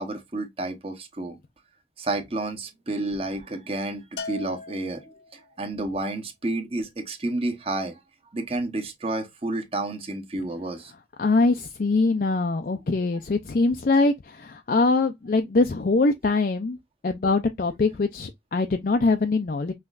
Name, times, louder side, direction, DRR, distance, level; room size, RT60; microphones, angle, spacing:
voice 1, 0.0-1.4 2.0-5.0 5.3-8.0 8.3-10.9, right 2 dB, 35° right, 1.0 m, -30 dB
Bell, 4.2-5.5, left 4 dB, 75° left, 1.0 m, -38 dB
voice 2, 11.2-16.8 17.0-19.7, left 3 dB, 50° left, 0.4 m, -23 dB
5.7 x 3.0 x 2.4 m
head